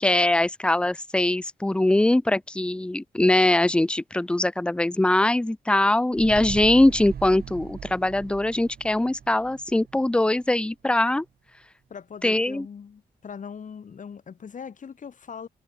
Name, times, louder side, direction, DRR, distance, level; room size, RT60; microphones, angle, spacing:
voice 1, 0.0-11.2 12.2-12.7, left 1 dB, 5° left, 0.5 m, -22 dB
sound 1, 6.1-10.7 11.0-11.1, right 8 dB, 65° right, 2.2 m, -40 dB
voice 2, 11.9-15.5, left 6 dB, 50° left, 1.5 m, -40 dB
wide cardioid pair, 105°, 17 cm